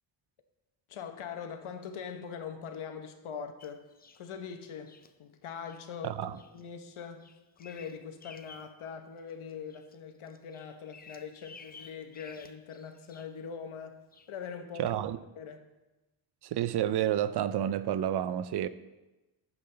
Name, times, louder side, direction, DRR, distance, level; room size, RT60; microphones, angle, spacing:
voice 1, 0.9-3.9 4.1-14.0 14.3-15.0 15.3-15.6, left 6 dB, 75° left, 1.1 m, -42 dB
Bird vocalization bird call bird song, 3.6-4.3 4.9-5.1 5.6-5.8 6.3-6.6 7.0-8.8 9.2-10.0 10.3-13.4 14.1-14.3, left 4 dB, 20° left, 0.4 m, -54 dB
voice 2, 14.8-15.2 16.4-18.7, right 11 dB, 55° right, 0.5 m, -30 dB
12.0 x 7.7 x 3.3 m
wide cardioid pair, 135°, 50 cm